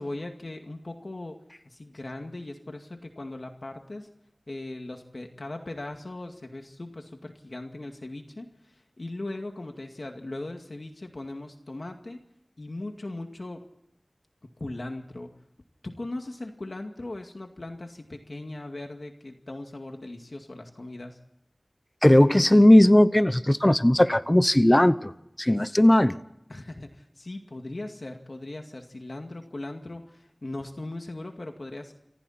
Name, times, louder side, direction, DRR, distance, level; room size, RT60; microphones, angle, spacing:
voice 1, 0.0-1.4 1.7-4.1 4.5-12.2 12.6-13.6 14.6-15.3 15.8-21.2 25.6-25.8 26.5-31.9, left 2 dB, 65° left, 4 dB, 2.1 m, -39 dB
voice 2, 22.0-25.1 25.4-26.2, left 1 dB, 20° left, 13 dB, 0.9 m, -18 dB
29.0 x 25.0 x 4.3 m, 0.83 s
wide cardioid pair, 55°, 0 cm